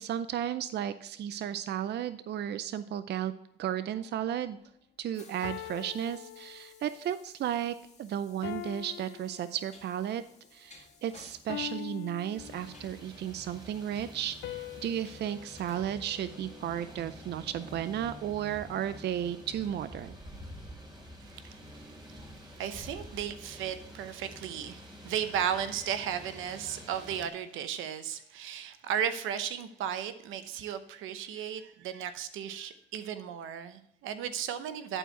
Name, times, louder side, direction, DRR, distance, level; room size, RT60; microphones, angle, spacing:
voice 1, 0.0-3.3 3.6-4.6 5.0-10.2 10.5-20.2, right 10 dB, 60° right, 0.5 m, -34 dB
sound 1, 4.0-4.3 5.4-7.1 8.4-10.1 11.5-13.1 14.4-16.8, left 14 dB, 85° left, 0.5 m, -44 dB
Train, 4.0-17.2, left 4 dB, 35° left, 1.9 m, -59 dB
sound 2, 12.4-27.3, equal, 20° right, 2.9 m, -48 dB
voice 2, 21.2-35.0, right 9 dB, 90° right, 0.8 m, -35 dB
11.0 x 4.6 x 4.4 m
cardioid pair, 90°, 20 cm